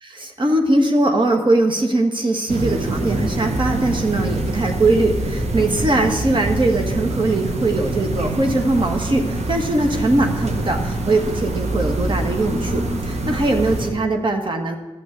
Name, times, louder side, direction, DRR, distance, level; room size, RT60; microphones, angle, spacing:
voice 1, 0.1-14.8, right 2 dB, 45° right, 4 dB, 1.6 m, -20 dB
sound 1, 2.5-13.9, right 2 dB, 65° right, 1.6 m, -25 dB
13.5 x 6.4 x 8.0 m, 1.2 s
cardioid pair, 50°, 12 cm